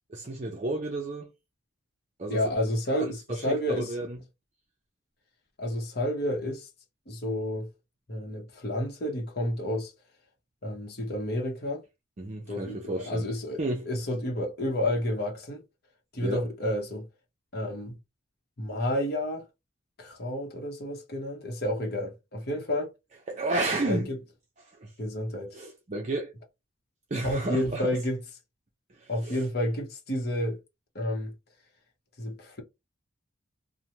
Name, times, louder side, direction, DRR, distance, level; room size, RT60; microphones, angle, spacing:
voice 1, 0.1-1.3 2.2-2.4 3.0-4.2 12.2-13.3 13.6-13.9 16.2-16.4 23.3-24.2 24.8-24.9 25.5-26.3 27.1-27.9 28.9-29.4, right 2 dB, 35° right, 0.5 m, -32 dB
voice 2, 2.3-3.9 5.6-6.7 7.1-7.7 8.1-9.9 10.6-11.8 12.5-13.6 13.9-15.6 16.1-17.1 17.5-17.9 18.6-19.4 20.0-22.9 23.9-24.2 25.0-25.6 27.2-28.2 29.1-30.6 30.9-31.3 32.2-32.6, left 1 dB, 50° left, 0.9 m, -30 dB
3.1 x 2.1 x 2.7 m
head